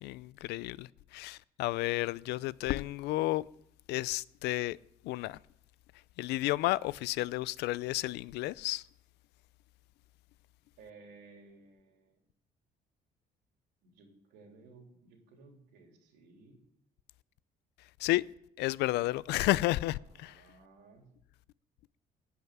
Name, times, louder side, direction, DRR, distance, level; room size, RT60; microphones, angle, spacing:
voice 1, 0.0-3.4 3.9-4.8 5.0-5.4 6.2-8.8 18.0-18.2 18.6-20.3, left 18 dB, 80° left, 0.4 m, -32 dB
voice 2, 10.8-12.2 13.8-16.6 20.0-21.0, right 3 dB, 85° right, 3.3 m, -57 dB
16.0 x 5.7 x 9.3 m
cardioid pair, 110°, 17 cm